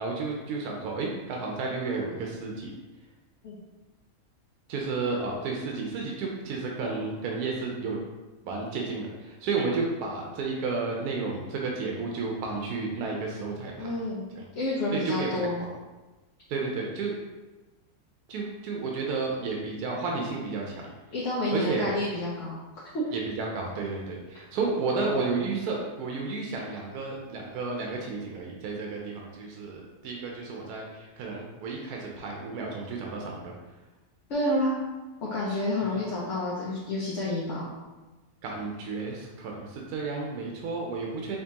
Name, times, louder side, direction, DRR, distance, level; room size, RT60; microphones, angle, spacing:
voice 1, 0.0-2.7 4.7-8.0 8.4-13.9 14.9-15.5 16.5-17.1 18.3-20.9 21.5-21.9 23.1-33.5 38.4-41.4, right 4 dB, 80° right, -1 dB, 1.1 m, -32 dB
voice 2, 13.8-14.2 14.6-15.6 21.1-22.6 22.9-23.2 34.3-34.7 35.2-37.7, left 1 dB, 60° left, -7 dB, 0.9 m, -29 dB
4.4 x 3.1 x 2.8 m, 1.2 s
omnidirectional pair, 1.6 m